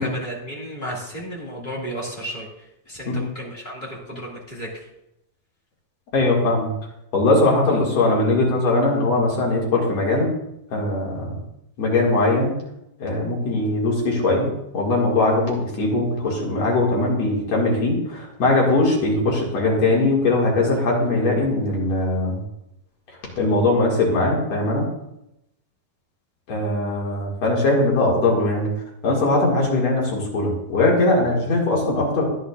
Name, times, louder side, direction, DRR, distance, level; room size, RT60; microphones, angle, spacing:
voice 1, 0.0-2.5 2.9-4.7, equal, 25° left, -3 dB, 1.1 m, -33 dB
voice 2, 6.1-6.7 7.1-10.3 10.7-11.4 11.8-12.5 13.0-22.4 23.4-24.9 26.5-28.7 29.0-32.2, left 2 dB, 50° left, -3 dB, 2.8 m, -20 dB
15.0 x 10.0 x 2.4 m, 0.85 s
omnidirectional pair, 4.3 m